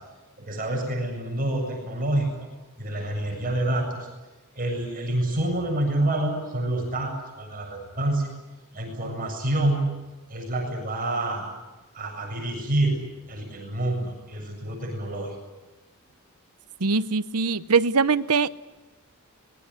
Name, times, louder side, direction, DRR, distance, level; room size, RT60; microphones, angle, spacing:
voice 1, 0.4-2.5 2.8-4.1 4.5-8.3 8.7-9.9 10.3-11.5 11.9-13.0 13.3-15.4, right 1 dB, 40° right, 1 dB, 7.5 m, -27 dB
voice 2, 16.8-18.5, right 5 dB, 85° right, 14 dB, 0.9 m, -22 dB
25.0 x 22.0 x 9.9 m, 1.1 s
head